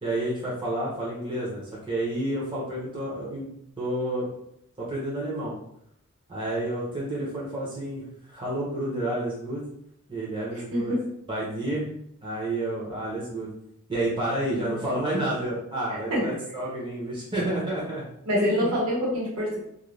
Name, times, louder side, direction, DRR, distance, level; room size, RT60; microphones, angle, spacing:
voice 1, 0.0-3.5 3.8-4.3 4.8-5.5 6.3-9.6 10.1-10.9 11.3-11.9 12.2-13.5 13.9-18.1 18.3-18.7, right 1 dB, 20° right, -7 dB, 0.7 m, -30 dB
voice 2, 10.7-11.0 14.6-14.8 15.9-16.3 18.2-19.6, equal, 70° right, -6 dB, 1.2 m, -26 dB
2.5 x 2.2 x 3.1 m, 0.74 s
head